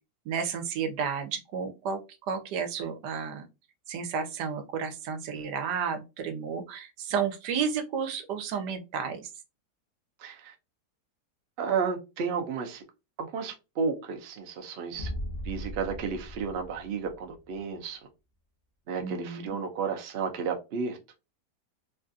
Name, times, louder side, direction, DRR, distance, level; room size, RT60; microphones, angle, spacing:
voice 1, 0.3-2.0 2.3-3.4 3.9-9.3 19.0-19.6, right 6 dB, 90° right, 1.3 m, -32 dB
voice 2, 10.2-10.5 11.6-12.8 13.2-15.1 15.4-18.0 18.9-21.0, right 5 dB, 60° right, 0.6 m, -32 dB
sound 1, 15.0-17.6, equal, 55° left, 0.7 m, -38 dB
3.4 x 2.4 x 2.5 m
omnidirectional pair, 1.8 m